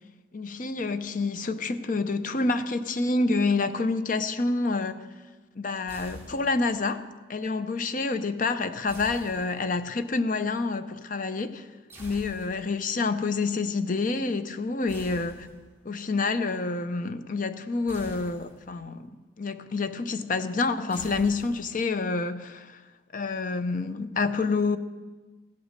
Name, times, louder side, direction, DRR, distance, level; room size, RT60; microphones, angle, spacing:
voice 1, 0.3-5.0 5.6-11.7 12.0-15.5 15.8-22.8 23.1-24.8, left 3 dB, 50° left, 0.7 m, -28 dB
sound 1, 5.9-6.8 8.9-10.0 11.9-12.9 14.9-15.9 17.9-18.9 20.9-21.9, right 1 dB, 15° right, 3.2 m, -47 dB
15.5 x 8.0 x 6.7 m
head